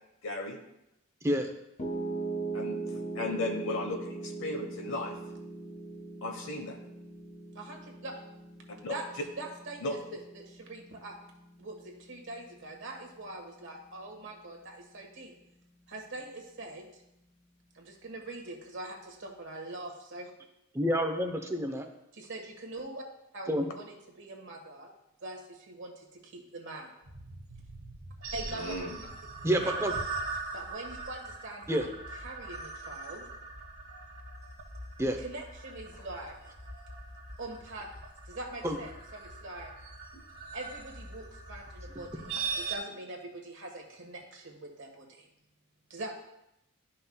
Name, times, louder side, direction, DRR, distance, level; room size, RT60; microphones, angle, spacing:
voice 1, 0.2-0.6 2.5-5.1 6.2-6.8 8.8-9.0 9.8-10.0 28.5-29.0, left 2 dB, 65° left, 5 dB, 1.1 m, -35 dB
Piano, 1.8-14.0, right 3 dB, 30° left, 0.7 m, -40 dB
voice 2, 7.5-8.1 8.9-11.1 11.6-15.3 15.9-17.0 17.7-20.3 22.1-23.0 23.3-24.9 25.2-26.9 28.3-28.7 29.6-29.9 30.5-33.2 35.2-36.4 37.4-37.9 38.2-39.7 40.5-45.2 45.9-46.2, right 2 dB, 60° right, 1 dB, 1.5 m, -43 dB
voice 3, 20.7-21.9 23.5-23.7 29.4-29.9 31.7-31.9 35.0-35.2 38.6-38.8, equal, 15° right, 4 dB, 0.7 m, -28 dB
sound 1, 27.0-42.8, right 4 dB, 90° right, 1.9 m, -41 dB
12.5 x 5.6 x 2.3 m, 0.84 s
head